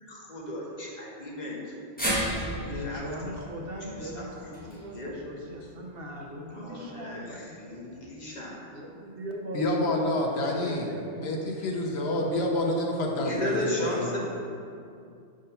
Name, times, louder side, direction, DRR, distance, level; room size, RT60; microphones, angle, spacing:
voice 1, 0.1-3.0 3.9-5.1 6.5-8.6 13.1-14.2, left 1 dB, 40° left, -4 dB, 1.1 m, -35 dB
sound 1, 2.0-6.2 6.6-6.7 7.9-8.0, right 1 dB, 10° left, 1.5 m, -35 dB
voice 2, 2.6-7.8 8.7-10.2 10.4-11.5, equal, 60° right, 0 dB, 0.9 m, -39 dB
voice 3, 9.5-10.9 11.2-13.3 13.6-14.2, left 1 dB, 65° left, 0 dB, 1.0 m, -28 dB
5.5 x 3.7 x 5.5 m, 2.4 s
omnidirectional pair, 1.2 m